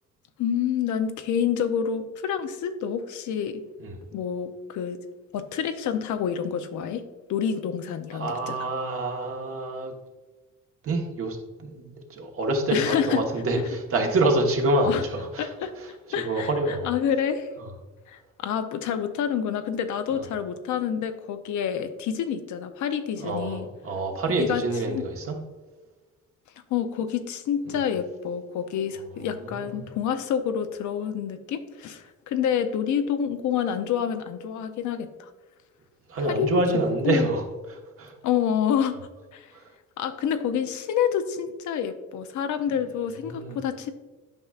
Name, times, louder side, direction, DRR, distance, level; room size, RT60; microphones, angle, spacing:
voice 1, 0.4-3.6 4.1-5.0 5.3-7.0 7.3-8.6 12.7-13.2 14.8-15.0 15.4-15.7 16.1-17.5 18.1-23.7 24.4-24.6 24.9-25.0 26.7-35.3 36.3-36.6 37.0-37.3 38.2-39.0 39.3-39.5 40.0-43.9, left 8 dB, 75° left, 9 dB, 0.6 m, -28 dB
voice 2, 8.1-9.9 10.8-15.5 15.8-15.9 16.2-16.9 20.1-20.2 23.2-25.3 27.7-27.8 29.2-29.8 36.1-37.4 38.0-38.2 39.5-39.7 43.3-43.6, right 2 dB, 50° right, 2 dB, 1.2 m, -27 dB
8.9 x 5.5 x 2.4 m, 1.3 s
cardioid pair, 90°, 30 cm